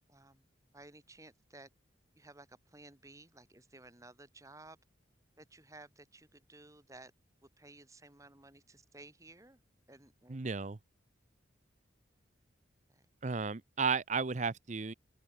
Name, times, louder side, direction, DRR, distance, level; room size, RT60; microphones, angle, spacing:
voice 1, 0.1-0.4 0.7-1.7 2.2-4.8 5.4-7.1 7.4-9.6 9.9-10.5 12.9-13.0, right 2 dB, 15° right, 2.3 m, -56 dB
voice 2, 10.3-10.8 13.2-14.9, right 5 dB, 40° right, 0.6 m, -33 dB
open air
head